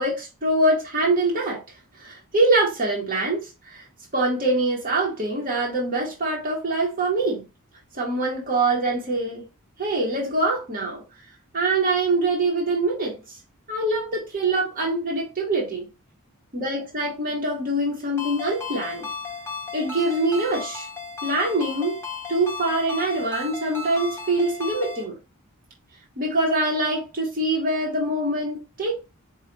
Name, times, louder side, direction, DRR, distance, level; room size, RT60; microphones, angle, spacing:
voice 1, 0.0-1.6 2.0-3.9 4.1-7.4 7.9-9.5 9.8-11.0 11.5-13.2 13.7-15.9 16.5-19.1 19.7-20.9 21.2-22.0 22.3-25.2 26.2-28.9, right 2 dB, 40° right, -3 dB, 1.0 m, -24 dB
Ringtone, 18.2-25.0, left 4 dB, 10° left, 0.7 m, -35 dB
4.4 x 2.4 x 3.8 m, 0.28 s
head